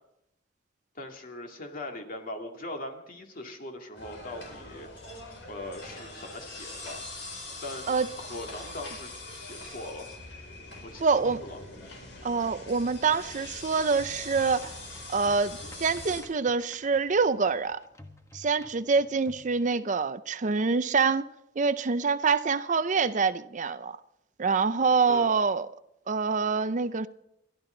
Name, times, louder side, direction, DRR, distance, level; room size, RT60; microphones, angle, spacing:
voice 1, 1.0-4.9 5.5-7.0 7.6-10.1 10.8-11.6 25.1-25.4, left 1 dB, 50° left, 2.4 m, -41 dB
sound 1, 3.9-16.2, left 2 dB, 75° left, 4.8 m, -43 dB
sound 2, 10.9-12.0 14.0-19.5, left 1 dB, 15° left, 1.3 m, -52 dB
voice 2, 11.0-11.4 12.2-14.8 15.1-17.8 18.3-21.3 21.6-24.0 24.4-25.7 26.1-27.1, right 5 dB, 45° right, 0.5 m, -26 dB
30.0 x 12.0 x 3.9 m
head